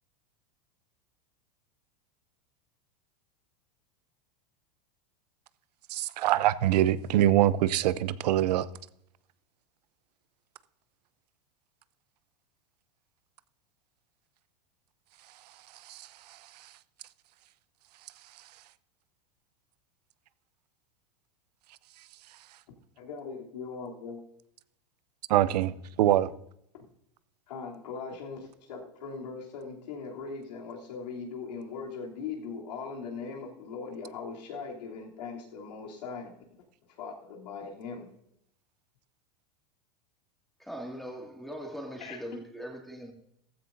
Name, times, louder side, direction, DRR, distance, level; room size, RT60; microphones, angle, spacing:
voice 1, 5.9-8.7 15.9-16.1 25.3-26.3, right 13 dB, 75° right, 0.6 m, -24 dB
voice 2, 23.0-24.2 27.5-36.3 37.0-38.1 42.0-42.2, left 5 dB, 85° left, 3.1 m, -40 dB
voice 3, 40.6-43.1, equal, ahead, 2.1 m, -40 dB
15.0 x 14.0 x 2.6 m
supercardioid pair, 125°, 21 cm